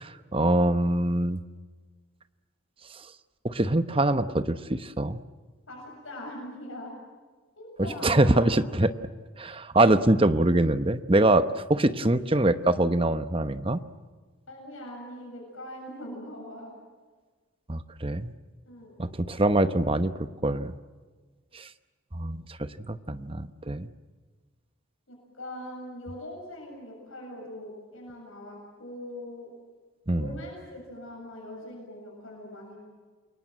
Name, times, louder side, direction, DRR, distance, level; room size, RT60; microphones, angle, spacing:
voice 1, 0.0-1.4 3.4-5.2 8.0-8.9 9.4-13.8 17.7-18.3 19.0-20.7 21.5-21.7 22.1-22.4 22.9-23.9 30.1-30.4, right 1 dB, 25° right, 11 dB, 1.0 m, -24 dB
voice 2, 5.7-7.0 7.6-8.5 14.5-16.7 18.7-19.0 25.1-29.5 30.2-32.8, left 1 dB, 70° left, -1 dB, 7.6 m, -41 dB
29.0 x 23.0 x 7.6 m, 1.4 s
head